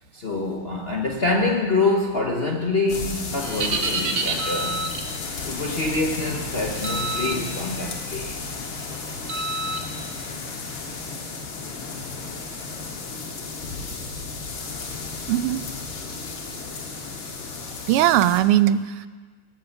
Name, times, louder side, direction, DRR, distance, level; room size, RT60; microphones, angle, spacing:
voice 1, 0.1-4.8 5.4-8.4, left 3 dB, 50° left, 1 dB, 0.7 m, -25 dB
sound 1, 2.9-18.4, left 4 dB, 65° left, 2.3 m, -33 dB
sound 2, 3.4-5.1 6.8-7.4 7.8-8.1 9.3-9.8, right 3 dB, 50° right, 1.4 m, -27 dB
voice 2, 15.3-15.6 17.9-19.1, right 12 dB, 85° right, 14 dB, 1.5 m, -19 dB
18.0 x 7.9 x 7.1 m, 1.4 s
omnidirectional pair, 2.4 m